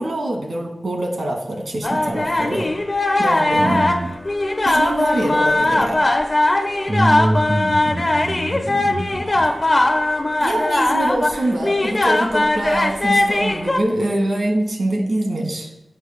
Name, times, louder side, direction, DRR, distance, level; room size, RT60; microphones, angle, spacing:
voice 1, 0.0-2.7 3.2-3.8 4.6-6.0 10.4-15.7, right 1 dB, 65° right, 2 dB, 2.1 m, -24 dB
sound 1, 1.8-13.8, left 1 dB, 30° left, 1.0 m, -19 dB
voice 2, 3.6-4.1 6.9-9.5, right 1 dB, 45° right, -6 dB, 2.2 m, -24 dB
16.0 x 8.1 x 2.2 m, 0.85 s
wide cardioid pair, 100°, 0 cm